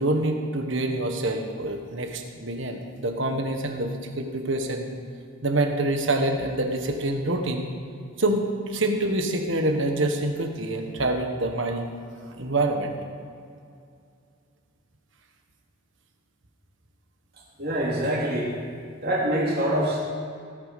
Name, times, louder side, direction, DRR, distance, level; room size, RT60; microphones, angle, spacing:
voice 1, 0.0-4.9 5.4-7.7 8.2-11.9 12.4-13.0, right 2 dB, 65° right, 4 dB, 1.5 m, -26 dB
voice 2, 17.6-18.5 19.0-20.0, right 1 dB, 45° right, -4 dB, 3.2 m, -25 dB
17.5 x 8.5 x 5.3 m, 2.4 s
head